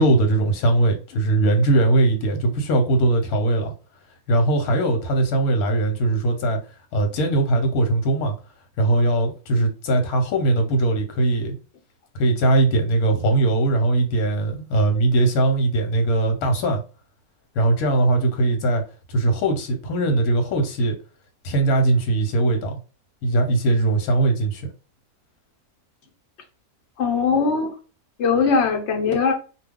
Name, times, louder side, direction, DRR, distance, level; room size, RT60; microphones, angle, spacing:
voice 1, 0.0-3.7 4.3-6.6 6.9-8.3 8.8-11.5 12.1-16.8 17.5-18.8 19.1-20.9 21.4-22.8 23.2-24.7, right 2 dB, 80° left, 1.2 m, -20 dB
voice 2, 27.0-27.7 28.2-29.3, left 5 dB, 55° left, 0.9 m, -20 dB
2.4 x 2.2 x 3.5 m
omnidirectional pair, 1.6 m